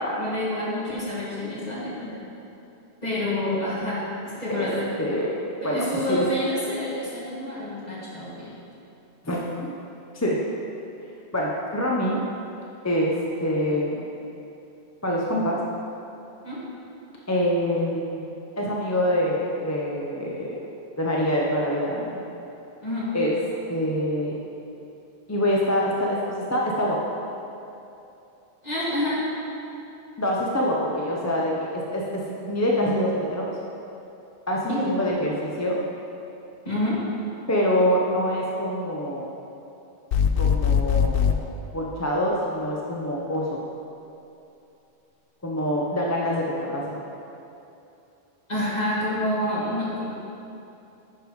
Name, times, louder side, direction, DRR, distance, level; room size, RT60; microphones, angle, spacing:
voice 1, 0.2-2.2 3.0-4.9 5.6-8.5 16.4-16.6 22.8-23.1 28.6-29.2 34.7-34.9 36.6-37.0 48.5-50.1, left 1 dB, 40° left, -8 dB, 2.3 m, -28 dB
voice 2, 5.0-5.3 5.6-6.2 9.2-9.4 10.2-10.4 11.3-12.2 12.8-13.1 13.4-14.1 15.0-15.6 17.3-18.3 18.6-20.6 21.0-22.2 23.1-23.3 23.7-24.3 25.3-27.0 30.2-33.5 34.5-35.8 37.5-39.3 40.4-41.3 41.7-43.6 45.4-47.0, equal, 20° left, -3 dB, 0.6 m, -25 dB
sound 1, 40.1-41.4, left 7 dB, 65° left, 0.7 m, -21 dB
10.0 x 5.1 x 4.8 m, 2.8 s
omnidirectional pair, 1.1 m